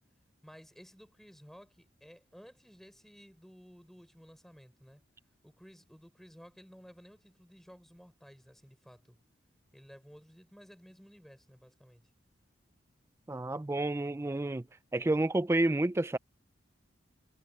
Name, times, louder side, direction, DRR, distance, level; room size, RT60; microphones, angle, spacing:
voice 1, 0.4-5.0 5.4-9.2 9.7-12.1, equal, ahead, 5.0 m, -55 dB
voice 2, 13.3-14.6 14.9-16.2, right 2 dB, 15° right, 0.3 m, -29 dB
head